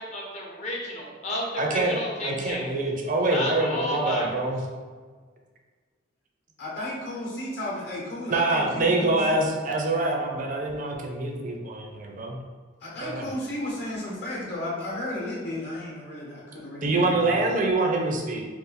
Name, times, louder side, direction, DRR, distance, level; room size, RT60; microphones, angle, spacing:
voice 1, 0.0-2.7 3.3-4.3, left 1 dB, 35° left, -2 dB, 0.6 m, -32 dB
voice 2, 1.6-4.6 8.3-12.4 13.0-13.3 16.8-18.5, right 2 dB, 45° right, 1 dB, 0.4 m, -25 dB
voice 3, 6.6-9.4 12.8-17.4, left 1 dB, 60° left, -5 dB, 0.9 m, -34 dB
2.5 x 2.4 x 4.0 m, 1.5 s
head